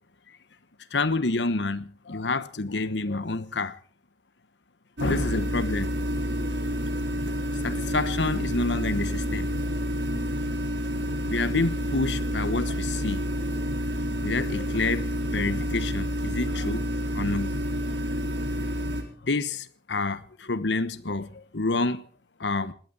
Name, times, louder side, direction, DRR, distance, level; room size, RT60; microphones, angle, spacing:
voice 1, 0.9-3.8 5.0-5.9 7.6-9.6 11.2-13.3 14.2-17.8 19.2-22.0 22.4-22.7, left 3 dB, 85° left, 1.2 m, -28 dB
sound 1, 5.0-19.0, equal, 85° right, 4.0 m, -29 dB
20.5 x 17.0 x 4.1 m
head